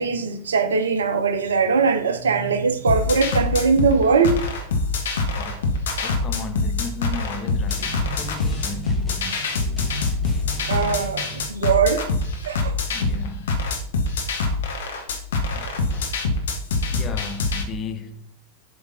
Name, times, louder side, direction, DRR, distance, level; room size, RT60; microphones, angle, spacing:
voice 1, 0.0-4.4 10.7-12.0 12.5-12.7, right 5 dB, 70° right, 0.8 m, -21 dB
sound 1, 2.9-17.6, left 3 dB, 60° left, 1.2 m, -25 dB
voice 2, 5.3-9.4 12.9-13.7 15.5-16.2 16.4-16.5 16.9-18.3, left 5 dB, 25° left, 0.9 m, -35 dB
sound 2, 7.7-11.5, right 3 dB, ahead, 1.3 m, -37 dB
7.2 x 3.6 x 5.0 m
figure-of-eight pair, 90°, 0 cm